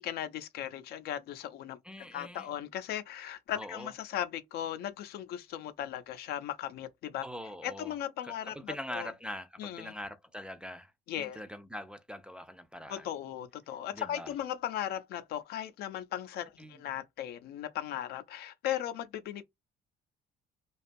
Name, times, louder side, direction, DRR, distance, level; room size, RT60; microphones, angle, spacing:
voice 1, 0.0-7.2 7.6-9.1 9.6-9.9 11.1-11.4 12.9-19.4, left 11 dB, 70° left, 0.4 m, -37 dB
voice 2, 1.8-2.5 3.5-3.9 7.2-8.0 8.2-13.1 13.9-14.3 16.6-16.8, equal, 5° right, 0.3 m, -43 dB
2.5 x 2.3 x 2.5 m
cardioid pair, 110°, 17 cm